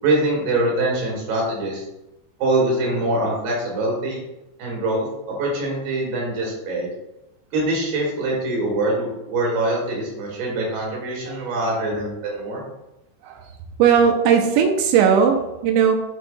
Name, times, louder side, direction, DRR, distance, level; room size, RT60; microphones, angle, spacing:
voice 1, 0.0-1.8 2.4-4.2 4.6-6.9 7.5-12.6, right 2 dB, 65° right, -3 dB, 3.7 m, -23 dB
voice 2, 13.8-16.0, right 7 dB, 85° right, 3 dB, 3.1 m, -17 dB
10.5 x 4.5 x 2.4 m, 0.92 s
omnidirectional pair, 5.1 m